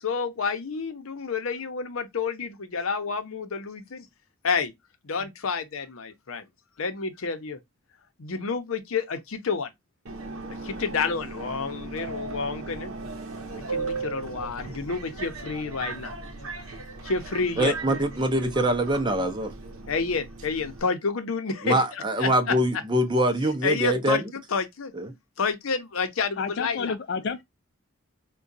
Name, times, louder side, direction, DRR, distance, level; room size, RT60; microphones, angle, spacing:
voice 1, 0.0-4.1 4.4-4.7 5.0-6.4 6.8-7.6 8.2-9.7 10.6-12.9 13.7-16.1 17.0-17.7 19.9-22.5 23.6-24.9 25.4-26.9, left 5 dB, 80° left, 0.7 m, -29 dB
Subway metro underground, 10.1-20.8, right 3 dB, 80° right, 0.7 m, -37 dB
voice 2, 17.6-19.5 21.6-24.3 24.9-25.1, right 1 dB, 20° right, 0.5 m, -24 dB
voice 3, 26.4-27.4, left 5 dB, 55° left, 0.3 m, -30 dB
4.7 x 2.2 x 2.5 m
head